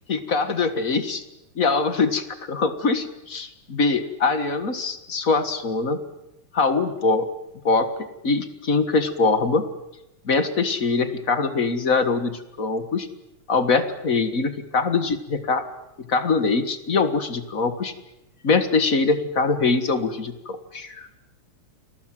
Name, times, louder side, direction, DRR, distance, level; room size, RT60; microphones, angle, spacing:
voice 1, 0.1-1.2 1.5-6.0 6.5-7.3 7.6-7.9 8.2-9.6 10.2-13.1 13.5-15.6 16.1-17.9 18.4-21.1, left 4 dB, 35° left, 10 dB, 1.5 m, -23 dB
29.0 x 21.5 x 7.7 m, 0.92 s
omnidirectional pair, 3.4 m